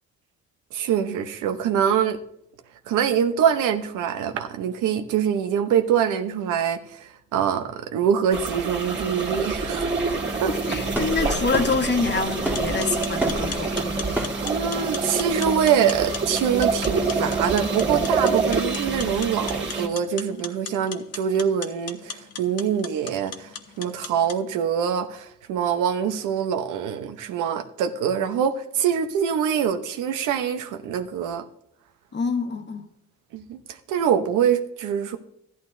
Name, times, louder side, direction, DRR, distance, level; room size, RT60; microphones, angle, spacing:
voice 1, 0.7-2.2 2.9-9.9 10.4-10.5 14.4-31.4 33.3-33.6 33.9-35.2, right 8 dB, 90° right, 0.9 m, -24 dB
sound 1, 8.3-19.9, right 4 dB, 35° right, 2.1 m, -26 dB
voice 2, 10.7-13.9 32.1-32.9, left 4 dB, 35° left, 1.3 m, -26 dB
sound 2, 10.9-15.8, right 1 dB, 5° right, 1.7 m, -32 dB
sound 3, 12.5-24.4, left 6 dB, 55° left, 1.0 m, -39 dB
13.5 x 11.0 x 2.7 m
cardioid pair, 90°, 30 cm